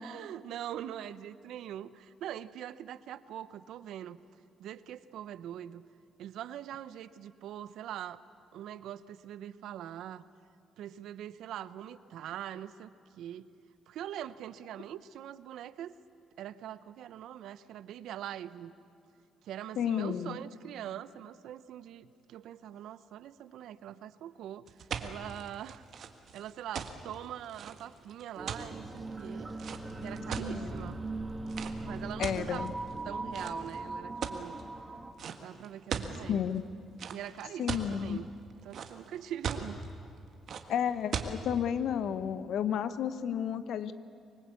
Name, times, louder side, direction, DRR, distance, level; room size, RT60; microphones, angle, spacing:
voice 1, 0.0-4.2 4.6-5.9 6.2-8.2 8.5-10.2 10.8-13.5 13.9-15.9 16.4-18.7 19.4-24.7 25.0-25.8 26.3-29.5 30.0-31.0 31.8-32.7 33.0-34.6 35.4-36.4 37.1-38.3 38.6-39.8, right 11 dB, 80° right, 15 dB, 0.7 m, -43 dB
voice 2, 19.8-20.4 30.4-30.8 32.2-32.7 36.3-36.6 37.6-38.2 40.7-43.9, left 8 dB, 75° left, 13 dB, 1.0 m, -32 dB
sound 1, 24.7-30.8 31.5-31.7 32.2-32.9 33.3-33.8 34.2-34.6 35.2-35.4 35.6-36.2 37.0-37.9 38.4-39.1 39.4-39.9 40.5-40.6 41.1-41.3, right 7 dB, 60° right, 1.7 m, -37 dB
sound 2, 28.4-35.1, right 2 dB, 20° right, 1.9 m, -39 dB
25.0 x 20.0 x 8.4 m, 2.4 s
cardioid pair, 90°, 0 cm